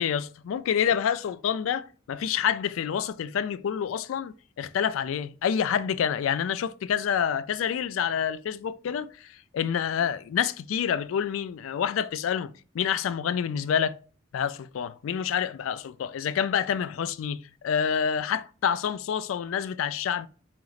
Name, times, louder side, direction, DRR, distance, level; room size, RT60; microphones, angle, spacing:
voice 1, 0.0-14.0 14.3-20.3, left 8 dB, 85° left, 0.3 m, -28 dB
5.1 x 2.9 x 2.4 m
head